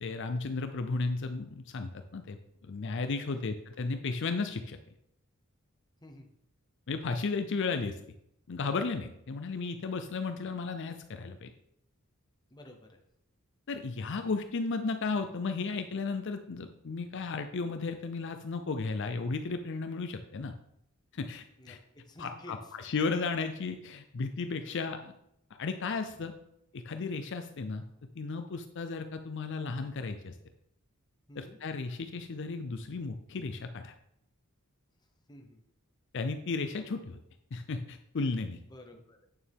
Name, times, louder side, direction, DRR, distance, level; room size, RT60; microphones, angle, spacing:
voice 1, 0.0-2.4 2.7-4.8 6.9-7.9 8.5-11.5 13.7-20.5 21.1-21.8 22.2-25.1 25.6-26.3 26.7-27.8 28.2-30.3 31.4-33.9 36.1-37.2 37.5-38.6, left 4 dB, 55° left, 7 dB, 0.5 m, -34 dB
voice 2, 12.5-13.0 21.6-21.8 22.1-22.7 24.6-24.8 31.3-31.6 35.3-35.6 38.7-39.2, left 1 dB, 20° left, 4 dB, 0.9 m, -51 dB
8.7 x 7.0 x 3.6 m, 0.77 s
head